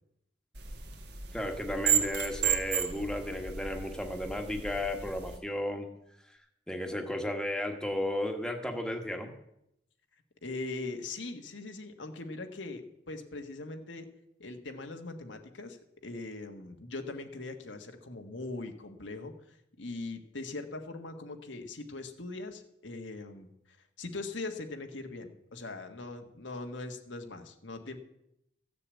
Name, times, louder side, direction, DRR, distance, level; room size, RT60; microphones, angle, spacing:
sound 1, 0.5-5.4, right 9 dB, 60° right, 1.8 m, -33 dB
voice 1, 1.3-5.9 6.7-9.3, left 1 dB, 5° left, 3 dB, 1.3 m, -34 dB
voice 2, 10.4-14.1 14.4-23.5 24.0-28.0, left 2 dB, 85° left, 5 dB, 1.5 m, -41 dB
15.0 x 6.9 x 8.4 m, 0.80 s
head